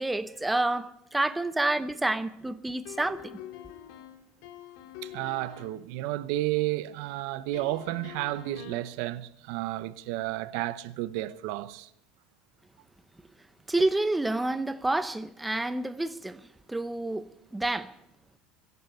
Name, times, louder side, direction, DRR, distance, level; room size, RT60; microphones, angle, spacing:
voice 1, 0.0-3.4 13.7-16.4 16.7-17.3 17.5-17.9, right 2 dB, 5° right, 0.6 m, -28 dB
sound 1, 2.9-5.9 7.5-9.0, left 11 dB, 70° left, 2.4 m, -45 dB
voice 2, 5.0-11.9, right 16 dB, 70° right, 0.8 m, -32 dB
22.5 x 11.0 x 5.5 m
cardioid pair, 140°, 0 cm